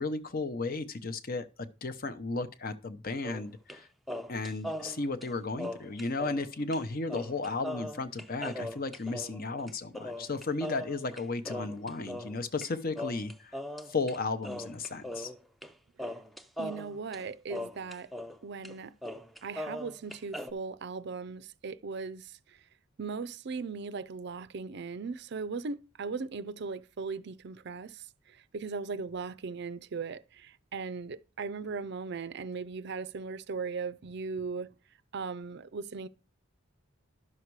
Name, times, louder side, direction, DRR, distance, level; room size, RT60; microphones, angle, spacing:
voice 1, 0.0-3.9 4.3-13.6 13.9-15.3, left 3 dB, 45° left, 0.8 m, -34 dB
sound 1, 3.2-3.8 4.1-6.5 6.7-6.8 7.1-12.7 13.0-14.2 14.4-15.7 16.0-18.4 18.6-18.7 19.0-20.5, left 1 dB, ahead, 0.5 m, -40 dB
voice 2, 16.6-18.1 18.4-19.0 19.4-22.6 23.0-34.7 35.1-36.1, right 4 dB, 55° right, 0.5 m, -38 dB
11.0 x 6.5 x 4.7 m
head